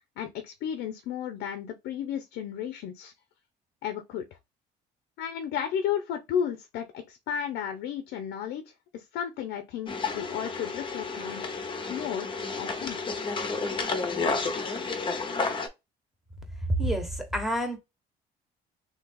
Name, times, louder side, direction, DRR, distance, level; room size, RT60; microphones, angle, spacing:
voice 1, 0.2-3.1 3.8-4.3 5.2-11.4 11.9-13.0, left 8 dB, 80° left, 0.7 m, -33 dB
sound 1, 9.9-15.7, left 4 dB, 30° left, 0.9 m, -31 dB
voice 2, 16.7-17.8, right 1 dB, ahead, 1.2 m, -28 dB
3.0 x 2.9 x 3.7 m
cardioid pair, 110°, 17 cm